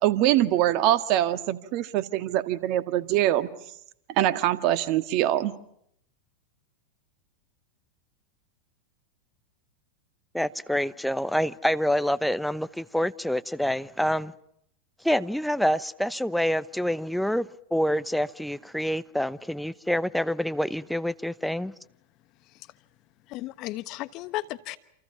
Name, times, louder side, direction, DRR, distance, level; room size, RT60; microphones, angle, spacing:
voice 1, 0.0-3.5 4.2-5.5, right 13 dB, 50° right, 1.8 m, -23 dB
voice 2, 10.3-14.3 15.0-21.7, equal, ahead, 0.9 m, -27 dB
voice 3, 22.4-22.7 23.3-24.8, left 17 dB, 45° left, 1.1 m, -35 dB
28.5 x 28.0 x 5.9 m
figure-of-eight pair, 95°, 0 cm